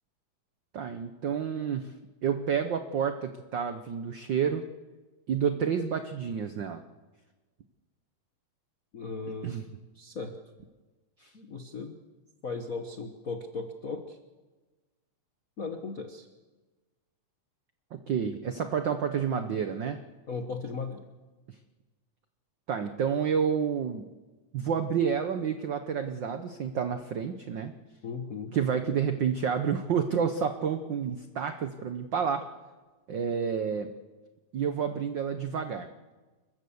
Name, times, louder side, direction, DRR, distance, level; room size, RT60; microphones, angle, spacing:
voice 1, 0.7-1.9 2.2-4.6 5.3-6.8 9.4-9.6 11.2-11.3 17.9-20.0 22.7-24.0 24.5-27.7 28.5-32.5 33.1-33.9 34.5-35.9, right 7 dB, 85° right, 8 dB, 1.0 m, -29 dB
voice 2, 8.9-9.6 9.9-10.4 11.3-12.0 12.4-14.2 15.6-16.3 20.3-21.1 28.0-28.5, left 4 dB, 75° left, 6 dB, 0.7 m, -37 dB
29.5 x 14.5 x 7.1 m, 1.3 s
omnidirectional pair, 3.4 m